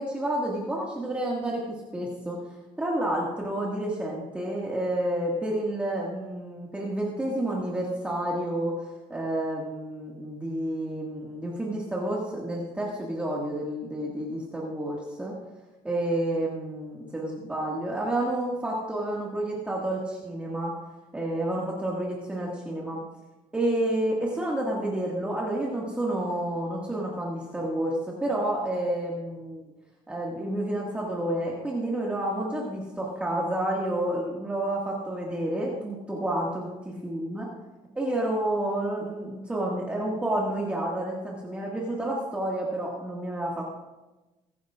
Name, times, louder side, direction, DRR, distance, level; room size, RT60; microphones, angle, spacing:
voice 1, 0.0-2.4 2.8-15.3 15.8-20.7 21.1-23.0 23.5-29.7 30.1-36.7 37.0-37.5 38.0-43.7, right 1 dB, 10° right, -4 dB, 1.9 m, -30 dB
23.0 x 11.0 x 2.5 m, 1.1 s
cardioid pair, 165°, 13 cm